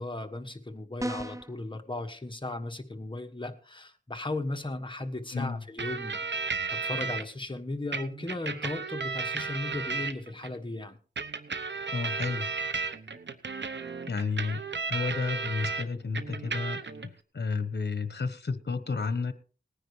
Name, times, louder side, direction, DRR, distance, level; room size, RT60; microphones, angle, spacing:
voice 1, 0.0-6.2 6.7-11.0, left 2 dB, 25° left, 5 dB, 1.4 m, -36 dB
sound 1, 1.0-1.6, right 1 dB, 15° right, 0.5 m, -34 dB
voice 2, 5.3-5.6 11.9-12.5 14.1-14.6 14.9-19.3, left 4 dB, 60° left, 12 dB, 1.1 m, -32 dB
sound 2, 5.8-7.2 7.9-10.5 11.2-15.8 16.1-17.1, right 4 dB, 70° right, 0.9 m, -34 dB
19.0 x 10.0 x 3.3 m, 0.38 s
wide cardioid pair, 55°, 19 cm